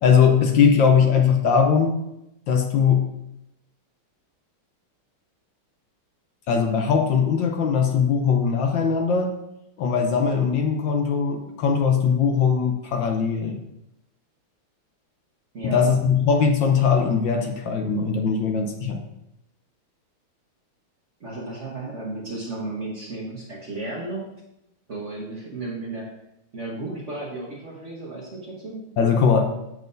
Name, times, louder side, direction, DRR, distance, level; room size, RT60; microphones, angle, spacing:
voice 1, 0.0-2.0 2.5-3.1 6.5-9.3 9.8-13.6 15.6-19.0 29.0-29.5, left 6 dB, 70° left, 4 dB, 1.3 m, -20 dB
voice 2, 15.5-15.9 21.2-24.2 24.9-26.1 26.5-28.8, right 2 dB, 45° right, -3 dB, 1.1 m, -33 dB
7.7 x 7.0 x 2.6 m, 0.85 s
omnidirectional pair, 2.3 m